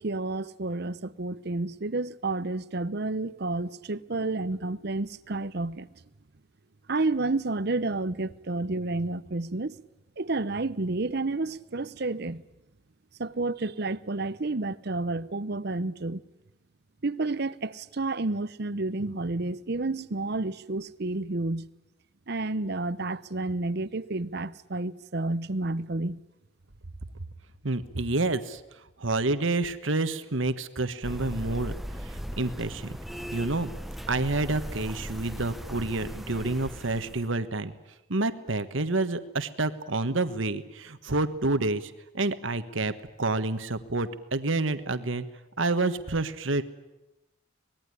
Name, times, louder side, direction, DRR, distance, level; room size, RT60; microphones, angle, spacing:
voice 1, 0.0-5.9 6.9-9.7 10.2-12.4 13.2-16.2 17.0-21.7 22.3-26.2, right 2 dB, 50° right, 0.8 m, -30 dB
voice 2, 27.6-28.6 29.0-31.7 32.0-33.0 33.3-33.7 34.1-37.7 38.1-42.9 43.2-45.3 45.6-46.6, right 2 dB, 70° right, 1.4 m, -28 dB
sound 1, 31.0-37.3, equal, ahead, 0.9 m, -38 dB
25.0 x 20.5 x 9.9 m
head